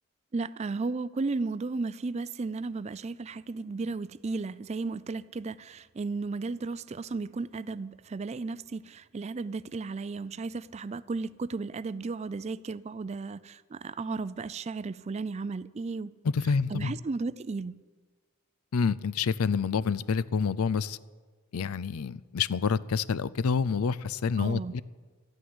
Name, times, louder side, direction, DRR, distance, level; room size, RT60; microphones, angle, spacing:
voice 1, 0.3-16.1 16.7-17.8 24.4-24.7, right 3 dB, 30° right, 0.4 m, -34 dB
voice 2, 16.2-16.9 18.7-21.0 21.5-24.8, left 5 dB, 90° left, 0.5 m, -28 dB
13.0 x 9.2 x 9.7 m
head